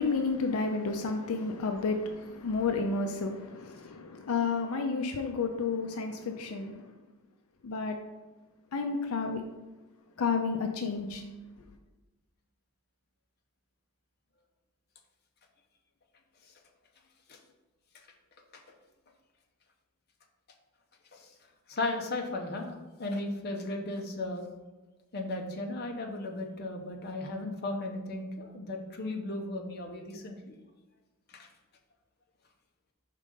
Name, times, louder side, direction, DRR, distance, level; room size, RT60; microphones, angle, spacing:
voice 1, 0.0-6.9 7.6-8.0 8.7-9.4 10.2-11.2, left 4 dB, 80° left, 0.5 m, -31 dB
voice 2, 21.7-24.5 25.1-30.6 31.3-31.5, left 2 dB, 45° left, 0.8 m, -36 dB
5.2 x 3.7 x 5.2 m
head